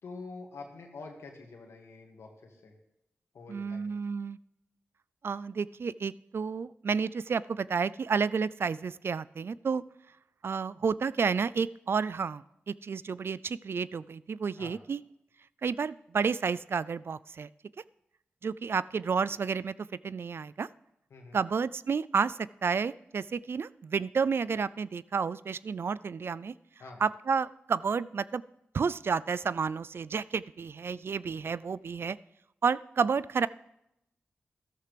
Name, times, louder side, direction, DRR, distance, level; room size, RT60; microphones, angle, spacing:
voice 1, 0.0-2.7 3.3-3.9 14.6-14.8 21.1-21.4 26.8-27.0, left 3 dB, 85° left, 2 dB, 2.0 m, -46 dB
voice 2, 3.5-4.4 5.2-9.8 10.4-15.0 15.6-17.5 18.4-19.7 20.0-20.7 21.3-26.5 27.0-28.4 28.7-32.2 32.6-33.5, right 5 dB, 60° right, 18 dB, 0.3 m, -31 dB
13.5 x 12.5 x 3.4 m, 0.84 s
cardioid pair, 40°, 5 cm